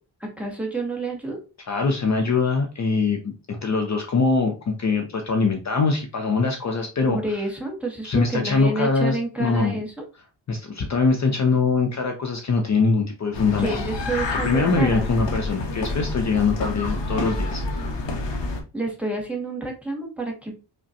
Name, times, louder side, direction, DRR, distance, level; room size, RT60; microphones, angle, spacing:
voice 1, 0.2-1.4 7.1-9.9 13.6-15.0 18.7-20.5, right 2 dB, 5° right, 0 dB, 0.8 m, -29 dB
voice 2, 1.7-3.3 3.6-7.2 8.0-9.8 10.5-13.7 14.4-17.6, left 4 dB, 40° left, 3 dB, 0.5 m, -22 dB
sound 1, 13.3-18.6, left 2 dB, 75° left, 0.9 m, -28 dB
5.0 x 2.2 x 2.6 m, 0.32 s
wide cardioid pair, 160°, 43 cm